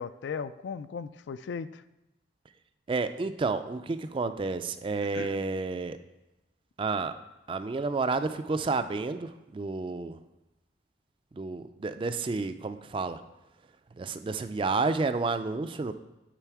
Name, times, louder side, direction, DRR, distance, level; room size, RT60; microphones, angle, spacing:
voice 1, 0.0-1.8 5.1-5.4, left 6 dB, 75° left, 14 dB, 0.3 m, -37 dB
voice 2, 2.9-6.0 6.8-7.1 7.5-10.2 11.3-13.2 14.0-15.9, right 3 dB, 30° right, 10 dB, 0.3 m, -30 dB
9.0 x 4.2 x 4.6 m, 0.98 s
head